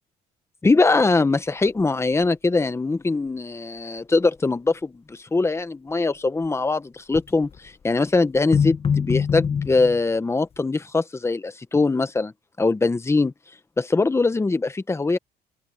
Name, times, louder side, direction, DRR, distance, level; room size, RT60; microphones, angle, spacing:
voice 1, 0.6-12.3 12.6-13.3 13.8-15.2, left 3 dB, 15° left, 1.1 m, -22 dB
sound 1, 1.8-1.9 2.2-2.3 7.1-7.6 8.4-10.0, left 7 dB, 35° left, 1.2 m, -23 dB
open air
cardioid pair, 110°, 17 cm